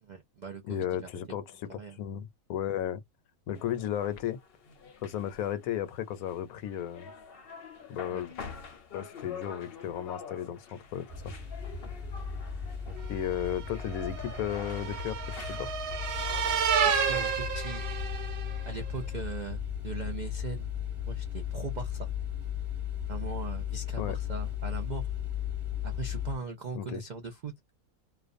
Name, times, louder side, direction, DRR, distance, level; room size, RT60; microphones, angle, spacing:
voice 1, 0.0-1.4 1.7-2.0 8.1-8.5 12.9-13.0 16.8-17.8 18.7-20.7 21.0-22.1 23.1-25.1 25.8-27.5, right 4 dB, 85° right, 0.4 m, -40 dB
voice 2, 0.7-3.0 3.5-4.4 5.0-7.1 7.9-8.3 8.9-11.3 13.1-15.7 24.0-24.2 26.7-27.0, left 10 dB, 80° left, 1.0 m, -34 dB
sound 1, 3.5-16.8, left 6 dB, 55° left, 0.7 m, -47 dB
sound 2, 11.1-26.4, left 8 dB, 25° right, 1.0 m, -36 dB
sound 3, 13.2-18.7, right 7 dB, 60° right, 0.7 m, -31 dB
2.4 x 2.2 x 2.5 m
omnidirectional pair, 1.5 m